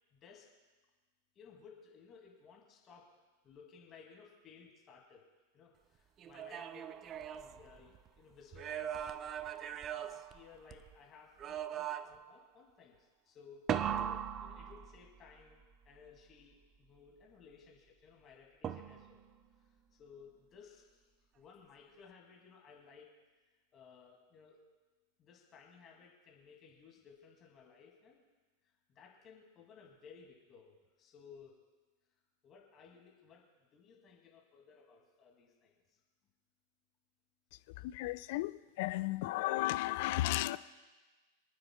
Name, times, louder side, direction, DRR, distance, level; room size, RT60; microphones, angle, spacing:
voice 1, 0.1-0.5 1.4-3.1 3.4-5.2 5.5-6.9 7.4-9.1 9.9-13.7 14.4-19.2 19.6-19.7 20.0-21.1 21.3-23.1 23.7-24.6 25.2-28.2 28.6-31.5 32.4-33.4 33.7-36.0, left 6 dB, 30° left, 2.4 m, -58 dB
sound 1, 6.2-8.1 8.5-10.9 11.4-12.4 13.7-15.3 18.6-19.3, right 9 dB, 30° right, 0.4 m, -39 dB
voice 2, 37.8-38.5 38.8-40.6, left 18 dB, 50° left, 0.4 m, -34 dB
28.5 x 9.6 x 2.3 m
figure-of-eight pair, 90°, 0 cm